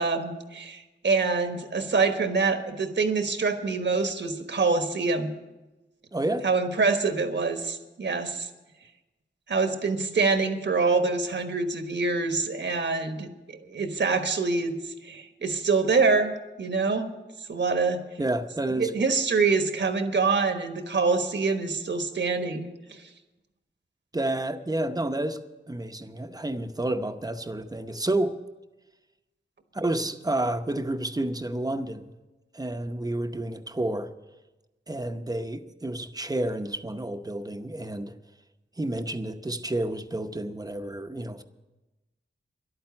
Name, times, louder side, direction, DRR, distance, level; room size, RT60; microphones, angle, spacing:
voice 1, 0.0-5.3 6.4-8.5 9.5-13.3 13.6-17.1 17.5-18.0 18.8-23.0, right 4 dB, 65° right, 7 dB, 1.3 m, -25 dB
voice 2, 6.1-6.5 18.2-18.9 24.1-25.4 25.7-28.4 29.7-32.1 32.5-34.1 34.9-38.1 38.8-41.4, right 1 dB, 20° right, 8 dB, 0.8 m, -30 dB
11.5 x 8.9 x 9.6 m, 1.1 s
wide cardioid pair, 90°, 20 cm